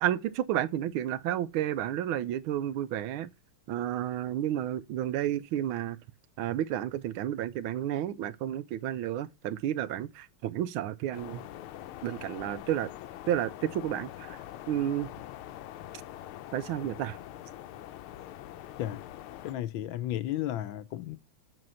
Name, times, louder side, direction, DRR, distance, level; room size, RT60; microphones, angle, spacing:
voice 1, 0.0-3.3 3.7-6.0 6.4-11.4 12.0-12.9 13.3-14.4 14.7-15.1 16.5-17.2, right 11 dB, 80° right, 1.4 m, -31 dB
sound 1, 11.1-19.6, left 12 dB, 90° left, 1.5 m, -44 dB
voice 2, 19.4-21.2, left 13 dB, 75° left, 1.3 m, -33 dB
7.7 x 5.0 x 5.5 m
omnidirectional pair, 2.3 m